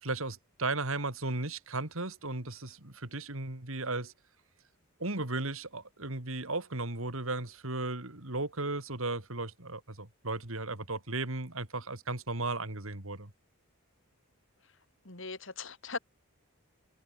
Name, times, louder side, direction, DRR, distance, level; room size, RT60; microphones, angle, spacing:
voice 1, 0.0-4.1 5.0-13.3, right 2 dB, 65° right, 3.1 m, -35 dB
voice 2, 15.0-16.0, left 4 dB, 55° left, 2.8 m, -39 dB
head